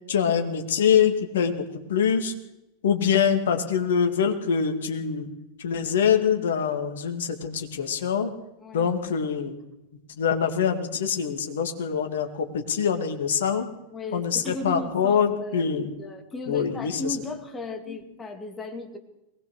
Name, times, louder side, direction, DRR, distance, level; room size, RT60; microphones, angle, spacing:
voice 1, 0.1-2.3 2.8-5.3 5.6-8.3 8.7-9.5 10.2-13.7 14.1-15.9 16.5-17.2 17.9-18.0, left 7 dB, 60° left, 6 dB, 2.4 m, -24 dB
voice 2, 13.9-15.7 16.0-19.0, left 2 dB, 15° left, 5 dB, 2.7 m, -36 dB
22.0 x 19.0 x 6.6 m, 0.94 s
figure-of-eight pair, 90°, 0 cm